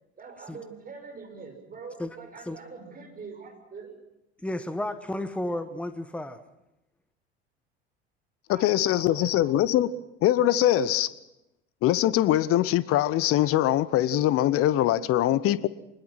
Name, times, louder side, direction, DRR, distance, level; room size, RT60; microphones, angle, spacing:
voice 1, 0.2-4.0 8.5-9.8, right 4 dB, 25° right, 5.9 m, -44 dB
voice 2, 4.4-6.4, left 1 dB, 5° left, 1.4 m, -32 dB
voice 3, 8.5-9.9 10.2-11.1 11.8-15.7, left 13 dB, 45° left, 1.0 m, -22 dB
24.5 x 21.0 x 6.0 m
figure-of-eight pair, 65°, 33 cm